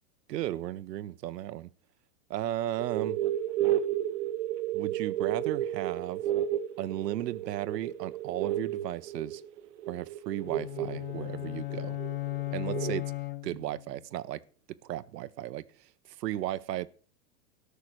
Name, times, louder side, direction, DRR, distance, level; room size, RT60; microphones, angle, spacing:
voice 1, 0.3-1.7 2.3-3.2 4.7-6.2 6.8-9.4 9.9-12.0 12.5-13.1 13.4-14.4 14.7-16.9, right 13 dB, 90° right, 0.9 m, -35 dB
sound 1, 2.8-13.0, right 12 dB, 45° right, 0.9 m, -32 dB
sound 2, 10.4-13.9, left 19 dB, 40° left, 0.6 m, -36 dB
13.0 x 6.5 x 6.1 m
supercardioid pair, 170°, 48 cm